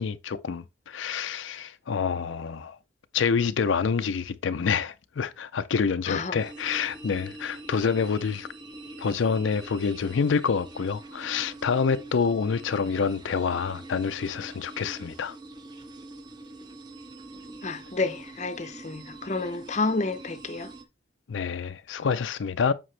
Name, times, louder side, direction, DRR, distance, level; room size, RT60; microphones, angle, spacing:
voice 1, 0.0-2.8 3.1-8.5 9.0-15.4 21.3-22.7, left 5 dB, 80° left, 0.5 m, -27 dB
voice 2, 6.1-6.4 17.6-20.7, left 3 dB, 35° left, 0.6 m, -30 dB
sound 1, 6.4-20.8, right 2 dB, 20° right, 0.8 m, -44 dB
7.6 x 5.1 x 3.3 m
head